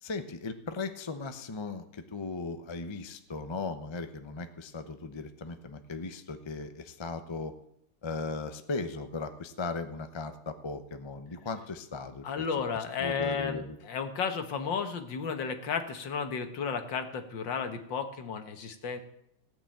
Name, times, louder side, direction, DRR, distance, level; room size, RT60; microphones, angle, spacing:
voice 1, 0.0-7.5 8.0-12.4 13.0-13.8, left 3 dB, 30° left, 8 dB, 0.5 m, -37 dB
voice 2, 12.2-19.0, left 6 dB, 70° left, 7 dB, 2.1 m, -33 dB
17.0 x 6.1 x 8.8 m, 0.75 s
omnidirectional pair, 2.1 m